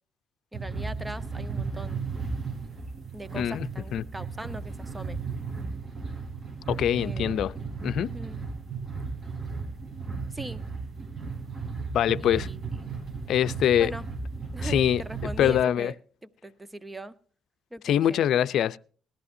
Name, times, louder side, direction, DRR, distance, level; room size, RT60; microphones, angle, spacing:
voice 1, 0.5-2.0 3.1-5.2 6.9-7.6 8.1-8.4 10.3-10.6 12.2-12.9 13.8-14.1 14.5-15.9 16.4-17.1 17.7-18.2, right 1 dB, 10° right, 1.0 m, -40 dB
sound 1, 0.5-15.5, right 4 dB, 45° right, 4.4 m, -35 dB
voice 2, 3.3-3.7 3.9-4.1 6.7-7.5 7.8-8.2 11.9-12.5 13.3-13.9 14.6-15.9 17.8-18.8, left 10 dB, 75° left, 0.6 m, -24 dB
19.5 x 14.0 x 2.7 m
cardioid pair, 90°, 0 cm